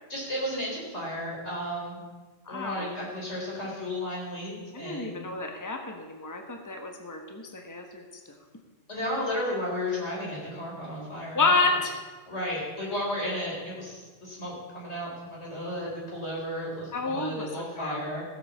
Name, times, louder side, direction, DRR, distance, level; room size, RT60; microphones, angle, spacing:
voice 1, 0.1-2.0 2.5-5.2 8.9-11.5 12.3-18.2, left 1 dB, 55° left, -4 dB, 4.7 m, -33 dB
voice 2, 2.5-2.9 4.7-8.0 11.3-12.0 16.9-18.0, left 3 dB, 15° left, 3 dB, 1.2 m, -29 dB
15.5 x 7.1 x 7.2 m, 1.4 s
omnidirectional pair, 1.3 m